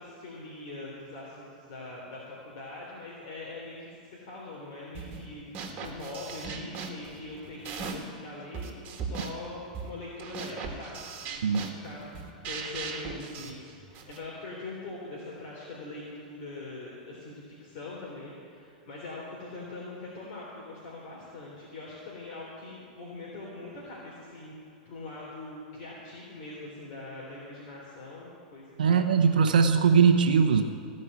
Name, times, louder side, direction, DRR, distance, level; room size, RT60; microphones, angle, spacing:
voice 1, 0.0-5.4 5.8-29.1, left 2 dB, 55° left, -5 dB, 3.4 m, -42 dB
sound 1, 4.9-5.3 5.5-8.2 8.5-14.2, right 5 dB, 40° right, 1.7 m, -39 dB
voice 2, 28.8-30.6, right 6 dB, 90° right, 5 dB, 0.9 m, -21 dB
16.0 x 5.5 x 9.8 m, 2.5 s
hypercardioid pair, 120°, 5 cm